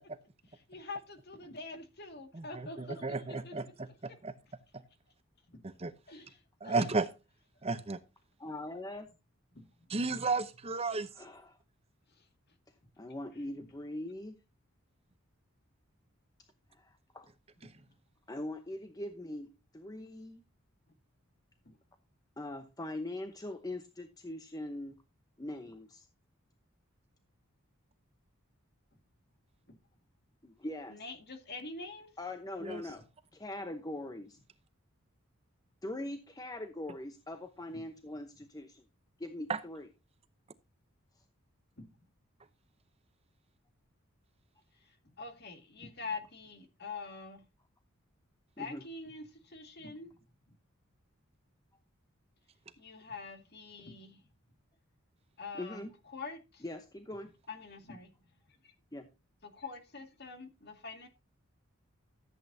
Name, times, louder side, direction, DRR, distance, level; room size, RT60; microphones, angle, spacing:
voice 1, 0.7-3.5 4.1-4.2 5.5-5.6 6.1-6.9 9.5-9.7 17.6-17.7 21.7-21.8 29.7-29.8 30.9-32.1 37.7-37.8 41.8-41.9 45.2-47.4 48.6-50.1 52.8-54.2 55.4-55.9 56.1-56.6 57.5-58.1 59.4-61.1, left 3 dB, 50° left, 2.1 m, -45 dB
voice 2, 2.3-4.3 5.6-5.9 6.6-7.1 7.6-8.0 9.9-11.1 32.6-32.8 39.5-39.6, right 3 dB, 30° right, 0.7 m, -33 dB
voice 3, 8.4-9.1 11.2-11.6 13.0-14.4 16.7-17.3 18.3-20.4 22.4-25.0 25.4-26.1 30.4-31.0 32.2-33.0 33.3-34.4 35.8-38.8 39.2-39.9 48.6-48.8 55.5-55.9 56.6-57.3 58.9-59.1, left 1 dB, 15° left, 0.8 m, -42 dB
14.0 x 8.4 x 2.7 m
head